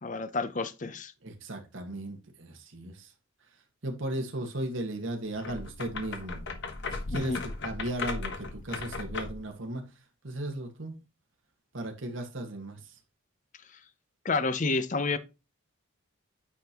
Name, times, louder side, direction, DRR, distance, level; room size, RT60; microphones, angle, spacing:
voice 1, 0.0-1.1 7.1-7.4 14.2-15.2, left 3 dB, 35° left, 0.6 m, -29 dB
voice 2, 1.2-3.1 3.8-6.5 6.8-9.8 10.2-10.9 11.7-12.9, right 1 dB, 60° right, 1.6 m, -36 dB
sound 1, 5.4-9.5, left 3 dB, 55° left, 1.2 m, -37 dB
9.2 x 5.2 x 2.9 m
head